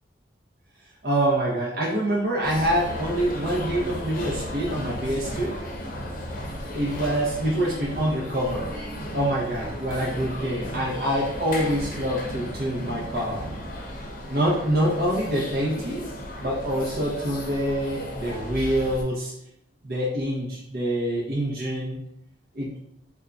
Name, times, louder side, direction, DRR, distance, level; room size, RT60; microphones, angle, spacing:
voice 1, 1.0-5.6 6.7-8.7 9.1-13.4 14.3-16.0 16.4-19.3 19.8-22.0 22.5-22.7, right 1 dB, 50° right, -4 dB, 0.7 m, -26 dB
sound 1, 2.4-19.0, equal, 45° left, 0.7 m, -35 dB
3.6 x 2.3 x 3.8 m, 0.78 s
head